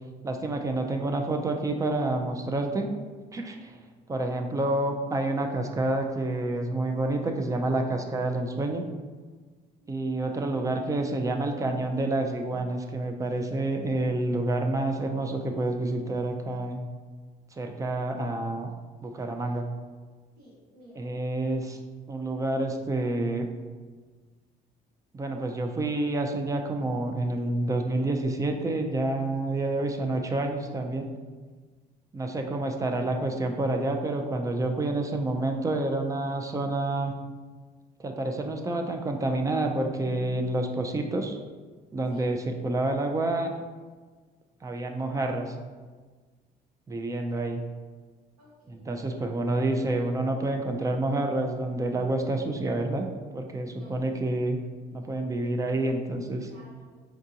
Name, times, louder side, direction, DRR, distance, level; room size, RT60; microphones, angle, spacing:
voice 1, 0.2-2.9 3.3-3.8 4.1-8.8 9.9-16.8 17.6-18.7 19.0-19.7 21.0-21.8 22.1-23.5 25.1-31.1 32.1-37.1 38.0-41.4 41.9-43.5 44.6-45.5 46.9-47.6 48.7-53.1 53.3-54.6 54.9-56.5, right 2 dB, 20° right, 4 dB, 0.3 m, -28 dB
voice 2, 9.8-10.2 20.4-21.1 42.1-42.3 48.4-49.2 53.8-54.0 56.3-57.0, right 1 dB, 85° right, -10 dB, 1.1 m, -55 dB
4.6 x 2.5 x 2.7 m, 1.4 s
cardioid pair, 110°, 17 cm